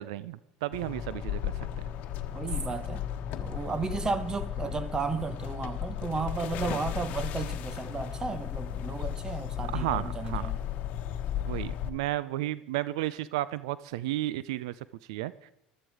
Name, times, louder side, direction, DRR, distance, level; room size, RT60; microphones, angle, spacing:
voice 1, 0.0-1.7 9.7-10.5 11.5-14.7 15.1-15.5, right 15 dB, 85° right, 0.5 m, -33 dB
sound 1, 0.7-11.9, left 10 dB, 55° left, 1.2 m, -35 dB
voice 2, 2.3-3.0 3.4-10.6, right 4 dB, 25° right, 1.2 m, -34 dB
15.0 x 12.5 x 4.8 m
supercardioid pair, 105°, 3 cm